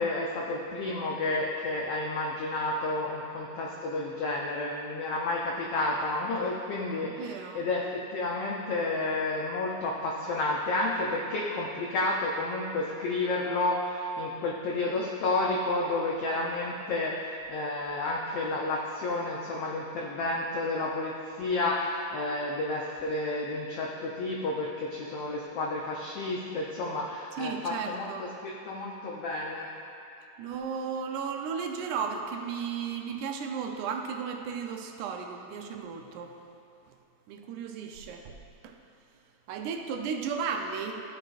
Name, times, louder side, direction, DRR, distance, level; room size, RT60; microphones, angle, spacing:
voice 1, 0.0-7.8 8.1-29.7, left 2 dB, 90° left, -2 dB, 1.3 m, -31 dB
voice 2, 7.0-7.6 27.4-28.2 30.4-36.3 37.3-38.3 38.6-38.7 39.5-41.0, right 6 dB, 80° right, 3 dB, 2.1 m, -34 dB
14.0 x 6.5 x 2.4 m, 2.9 s
omnidirectional pair, 3.6 m